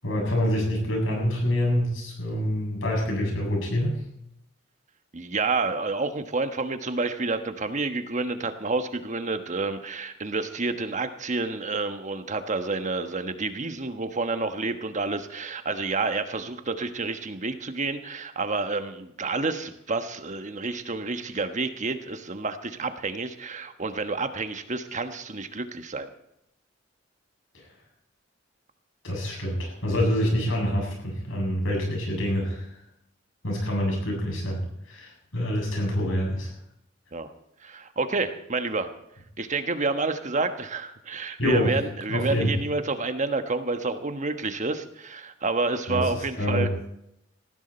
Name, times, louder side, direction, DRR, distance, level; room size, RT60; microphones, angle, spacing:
voice 1, 0.0-4.0 27.5-27.6 29.0-32.7 33.4-34.6 34.9-36.5 41.4-41.7 42.1-42.5 45.9-46.1 46.4-46.7, equal, 90° left, 0 dB, 7.9 m, -26 dB
voice 2, 5.1-26.1 37.1-37.3 37.6-38.9 39.4-46.7, right 3 dB, 40° right, 8 dB, 1.3 m, -29 dB
19.5 x 15.0 x 4.4 m, 0.78 s
head